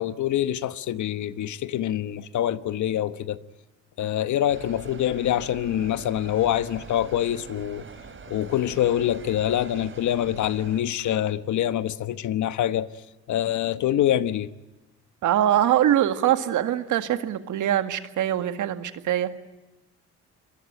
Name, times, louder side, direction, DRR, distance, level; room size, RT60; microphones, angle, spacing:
voice 1, 0.0-3.4 4.0-7.8 8.3-12.9 13.3-14.5, left 11 dB, 70° left, 1.3 m, -25 dB
sound 1, 4.5-10.8, right 5 dB, 40° right, 3.9 m, -43 dB
voice 2, 15.2-19.3, right 11 dB, 80° right, 2.0 m, -23 dB
26.0 x 22.0 x 9.1 m
cardioid pair, 90°, 30 cm